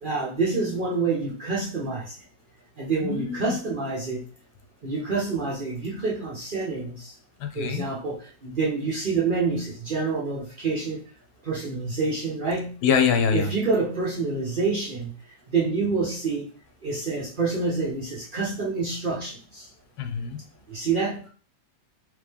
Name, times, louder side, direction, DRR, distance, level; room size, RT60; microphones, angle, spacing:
voice 1, 0.0-2.1 2.8-4.2 4.8-7.1 7.5-11.0 11.4-12.8 13.3-15.1 15.5-16.5 16.8-19.7 20.7-21.2, right 4 dB, 70° right, -5 dB, 0.4 m, -27 dB
voice 2, 3.0-3.5 7.4-7.8 12.8-13.5 20.0-20.4, left 6 dB, 80° left, 6 dB, 1.5 m, -24 dB
3.6 x 3.1 x 3.4 m, 0.40 s
omnidirectional pair, 2.2 m